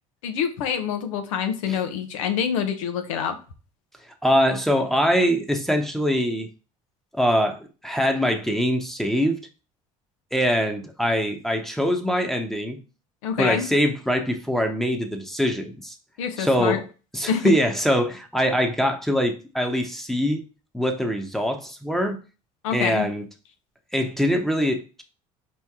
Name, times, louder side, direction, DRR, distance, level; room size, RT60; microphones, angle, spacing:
voice 1, 0.2-3.4 13.2-13.7 16.2-16.8 17.3-17.5 22.6-23.1, left 7 dB, 90° left, 0.8 m, -26 dB
voice 2, 4.2-6.5 7.1-9.4 10.3-12.8 13.4-16.0 16.4-16.9 17.1-20.4 20.7-22.2 22.7-23.2 23.9-25.0, equal, ahead, 0.9 m, -23 dB
4.4 x 3.1 x 3.5 m
hypercardioid pair, 75°, 16 cm